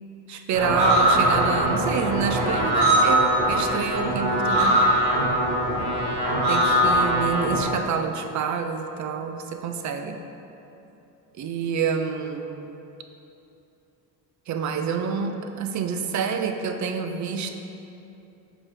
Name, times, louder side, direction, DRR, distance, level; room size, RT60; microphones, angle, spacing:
voice 1, 0.3-4.8 6.5-10.2 11.4-12.7 14.5-17.5, right 6 dB, 45° right, 6 dB, 0.5 m, -28 dB
sound 1, 0.5-7.7, right 1 dB, 80° right, 1.3 m, -21 dB
6.7 x 2.9 x 5.0 m, 2.9 s
cardioid pair, 90°, 40 cm